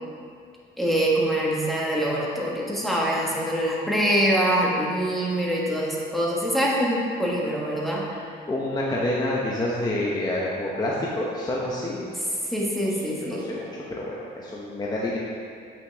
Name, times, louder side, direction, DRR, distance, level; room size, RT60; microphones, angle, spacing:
voice 1, 0.8-8.1 12.5-13.6, right 1 dB, ahead, -4 dB, 1.6 m, -24 dB
voice 2, 8.1-12.1 13.3-15.2, left 1 dB, 20° left, -5 dB, 1.0 m, -28 dB
8.1 x 6.1 x 3.5 m, 2.3 s
cardioid pair, 90°, 20 cm